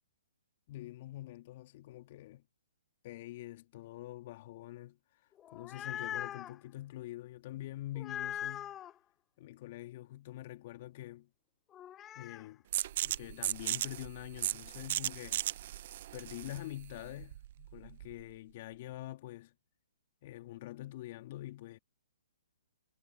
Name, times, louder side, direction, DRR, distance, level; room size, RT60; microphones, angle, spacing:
voice 1, 0.7-2.4 3.0-5.0 5.5-8.8 9.4-11.3 12.2-12.6 13.0-15.5 16.1-19.5 20.2-21.8, left 15 dB, 40° left, 2.4 m, -45 dB
sound 1, 5.4-6.5 8.0-8.9 11.7-12.5, left 11 dB, 20° left, 0.6 m, -41 dB
sound 2, 12.7-18.2, right 13 dB, 45° right, 0.7 m, -37 dB
figure-of-eight pair, 130°, 0 cm